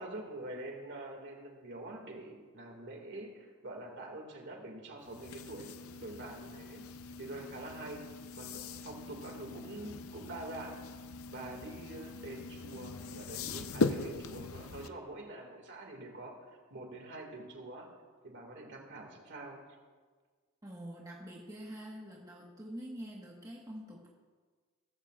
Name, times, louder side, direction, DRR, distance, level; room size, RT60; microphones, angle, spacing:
voice 1, 0.0-6.8 7.2-8.0 8.3-10.8 11.3-16.3 16.7-17.9 18.2-19.6, right 2 dB, 55° right, 2 dB, 2.1 m, -45 dB
sound 1, 5.0-14.9, left 4 dB, 70° left, 0.6 m, -40 dB
voice 2, 20.6-24.1, equal, 15° right, -3 dB, 1.4 m, -46 dB
18.0 x 14.5 x 2.4 m, 1.5 s
head